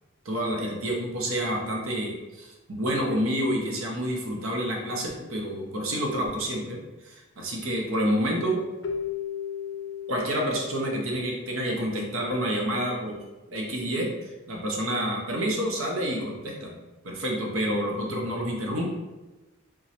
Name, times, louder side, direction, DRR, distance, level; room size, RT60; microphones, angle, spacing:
voice 1, 0.2-6.8 7.0-8.6 10.1-13.1 13.5-14.1 14.5-16.8 17.0-18.8, equal, 85° right, -1 dB, 0.8 m, -28 dB
Keyboard (musical), 8.8-12.1, left 8 dB, 60° left, 0.4 m, -36 dB
3.6 x 3.1 x 2.9 m, 1.1 s
head